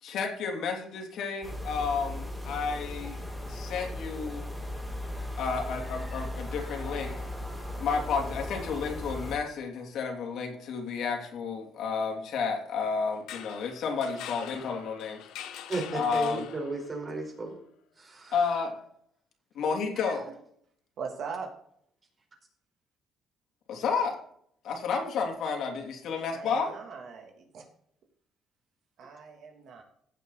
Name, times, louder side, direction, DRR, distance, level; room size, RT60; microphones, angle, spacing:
voice 1, 0.0-3.2 3.5-4.5 5.4-7.3 7.8-15.3 15.9-16.5 18.3-18.8 19.5-20.3 23.7-24.2 24.6-26.7, left 5 dB, 70° left, 2 dB, 3.1 m, -31 dB
sound 1, 1.4-9.4, left 1 dB, ahead, 3.6 m, -37 dB
sound 2, 13.1-17.0, left 10 dB, 85° left, 1.3 m, -44 dB
voice 2, 15.7-17.6 18.0-18.3 20.0-20.1, right 2 dB, 30° right, 1 dB, 4.5 m, -34 dB
voice 3, 21.0-21.5 26.3-27.6 29.0-29.8, right 5 dB, 60° right, 3 dB, 3.0 m, -40 dB
16.0 x 8.3 x 4.2 m, 0.66 s
cardioid pair, 115°, 0 cm